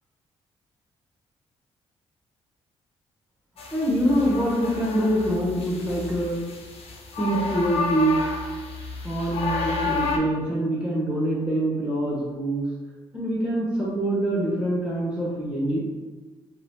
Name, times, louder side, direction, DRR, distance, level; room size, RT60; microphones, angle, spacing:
sound 1, 3.6-10.2, left 4 dB, 65° left, 0.6 m, -31 dB
voice 1, 3.7-6.4 7.2-8.2 9.0-12.6 13.1-15.8, right 1 dB, 10° right, -6 dB, 1.0 m, -24 dB
2.8 x 2.5 x 3.4 m, 1.3 s
cardioid pair, 80°, 11 cm